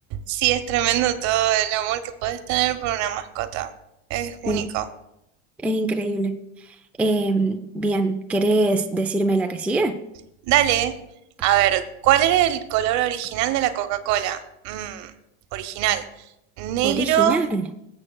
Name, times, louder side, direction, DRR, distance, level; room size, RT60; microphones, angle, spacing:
voice 1, 0.1-3.7 4.1-4.9 10.4-10.9 11.4-15.1 15.5-16.1 16.6-17.4, right 12 dB, 55° right, 10 dB, 1.0 m, -22 dB
voice 2, 5.6-6.4 7.0-10.0 16.8-17.6, right 2 dB, 5° right, 5 dB, 0.4 m, -23 dB
20.5 x 7.7 x 2.3 m, 0.83 s
supercardioid pair, 120°, 34 cm